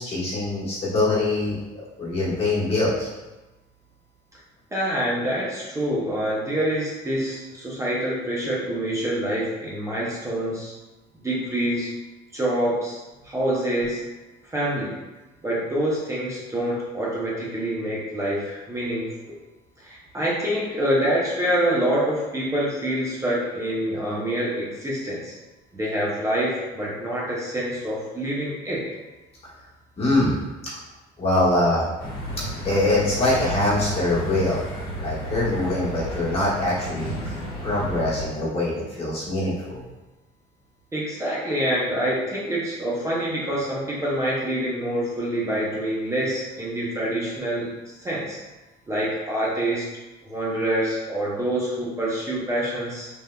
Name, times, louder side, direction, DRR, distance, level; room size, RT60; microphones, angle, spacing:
voice 1, 0.0-1.6 2.0-3.1 30.0-30.4 31.2-31.9 32.6-34.6 35.0-39.8, left 2 dB, 35° left, -7 dB, 1.2 m, -23 dB
voice 2, 4.7-10.7 11.2-11.9 12.3-13.0 13.2-14.0 14.5-15.0 15.4-19.1 19.8-25.3 25.7-28.8 40.9-47.7 48.0-48.4 48.9-49.8 50.2-53.1, right 1 dB, 15° right, -6 dB, 0.7 m, -26 dB
sound 1, 32.0-38.3, equal, 60° left, 1.1 m, -32 dB
3.5 x 2.6 x 2.2 m, 1.1 s
cardioid pair, 110°, 17 cm